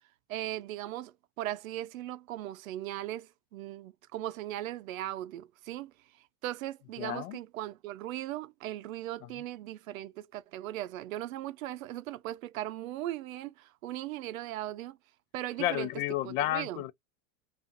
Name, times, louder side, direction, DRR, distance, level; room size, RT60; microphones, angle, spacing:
voice 1, 0.3-5.9 6.4-15.0 15.3-15.9 16.2-16.8, right 14 dB, 90° right, 0.5 m, -38 dB
voice 2, 7.0-7.4 15.6-16.9, left 13 dB, 85° left, 0.5 m, -31 dB
2.5 x 2.4 x 2.5 m
supercardioid pair, 125°, 40 cm